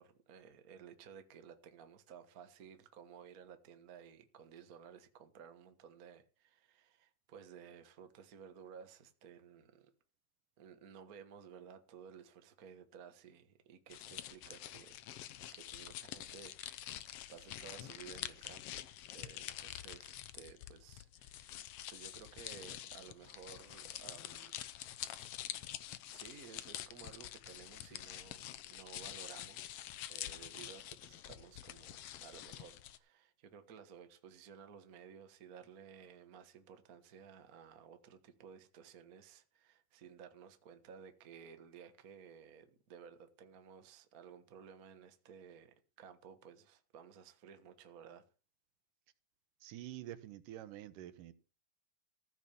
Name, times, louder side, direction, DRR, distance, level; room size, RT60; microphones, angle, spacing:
voice 1, 0.0-9.9 10.6-15.0 15.5-18.9 19.1-24.6 26.1-29.8 30.1-48.2, right 7 dB, 55° right, 0.9 m, -56 dB
sound 1, 13.9-33.0, left 12 dB, 80° left, 1.3 m, -47 dB
voice 2, 49.6-51.3, right 13 dB, 80° right, 2.5 m, -47 dB
15.0 x 6.1 x 7.0 m
omnidirectional pair, 3.7 m